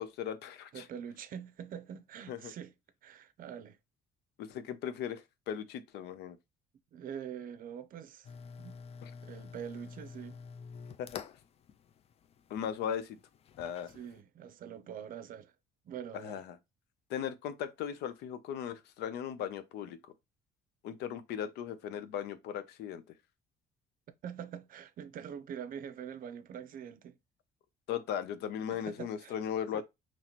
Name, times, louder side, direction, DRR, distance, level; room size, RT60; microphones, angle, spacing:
voice 1, 0.0-0.9 2.3-2.5 4.4-6.4 9.0-9.1 11.0-11.2 12.5-13.2 13.6-13.9 16.1-16.6 17.1-20.0 20.8-23.0 27.9-29.8, left 9 dB, 80° left, 0.6 m, -37 dB
voice 2, 0.7-2.7 3.0-3.8 6.9-8.8 9.2-10.4 13.9-15.5 15.8-16.4 24.2-27.1 28.7-29.4 29.7-29.8, right 8 dB, 55° right, 0.6 m, -44 dB
sound 1, 8.2-14.2, left 6 dB, 40° left, 0.4 m, -49 dB
4.1 x 3.1 x 2.9 m
cardioid pair, 110°, 17 cm